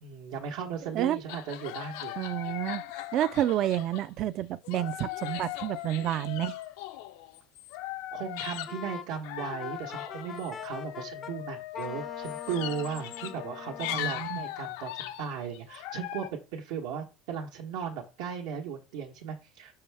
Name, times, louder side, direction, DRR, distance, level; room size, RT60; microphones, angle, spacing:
voice 1, 0.0-2.1 8.1-19.8, right 7 dB, 85° right, 1.1 m, -36 dB
sound 1, 1.3-4.2 4.6-8.8 9.2-16.3, left 14 dB, 85° left, 0.5 m, -39 dB
voice 2, 2.2-2.8 3.1-6.6 13.9-14.4, right 12 dB, 45° right, 0.3 m, -29 dB
Wind instrument woodwind instrument, 8.7-11.3 11.7-14.1, left 6 dB, 25° left, 0.4 m, -43 dB
5.5 x 5.5 x 3.4 m
cardioid pair, 150°, 0 cm